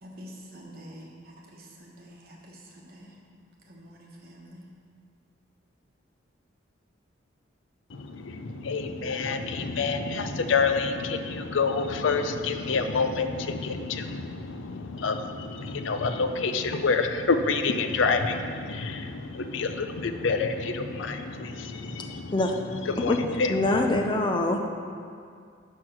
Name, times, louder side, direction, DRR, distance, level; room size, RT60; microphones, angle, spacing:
voice 1, 0.0-3.2 3.6-4.7, equal, 50° right, -2 dB, 1.3 m, -47 dB
voice 2, 7.9-24.1, left 4 dB, 75° left, 7 dB, 0.5 m, -28 dB
voice 3, 23.5-24.6, left 2 dB, 25° left, 3 dB, 0.4 m, -24 dB
6.4 x 6.1 x 5.9 m, 2.2 s
head